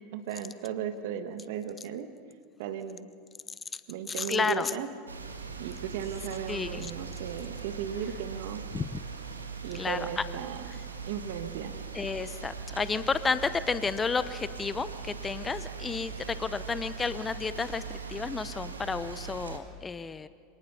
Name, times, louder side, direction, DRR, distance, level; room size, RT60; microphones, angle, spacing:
voice 1, 0.1-2.1 2.6-3.1 3.9-4.9 5.6-8.6 9.6-11.8, right 8 dB, 60° right, 9 dB, 1.5 m, -36 dB
voice 2, 4.1-4.7 6.5-6.9 8.7-9.0 9.7-10.2 10.7-10.8 11.9-20.3, left 5 dB, 20° left, 14 dB, 0.8 m, -31 dB
sound 1, 5.1-19.6, right 5 dB, 85° right, 1.7 m, -40 dB
27.0 x 19.0 x 5.7 m, 2.2 s
figure-of-eight pair, 85°, 0 cm